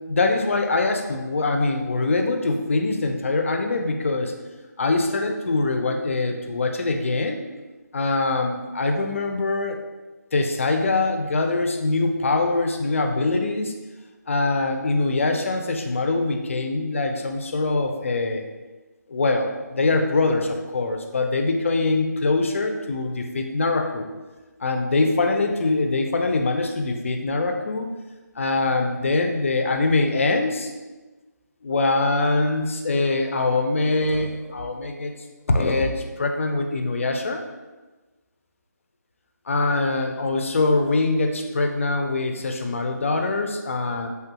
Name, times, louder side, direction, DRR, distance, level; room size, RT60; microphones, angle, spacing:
voice 1, 0.1-4.3 4.8-7.4 7.9-9.8 10.3-13.7 14.3-18.4 19.1-24.1 24.6-27.9 28.4-30.7 31.6-35.1 35.5-37.4 39.5-44.1, left 3 dB, 45° left, 4 dB, 0.3 m, -23 dB
3.3 x 2.2 x 2.8 m, 1.2 s
figure-of-eight pair, 165°, 10 cm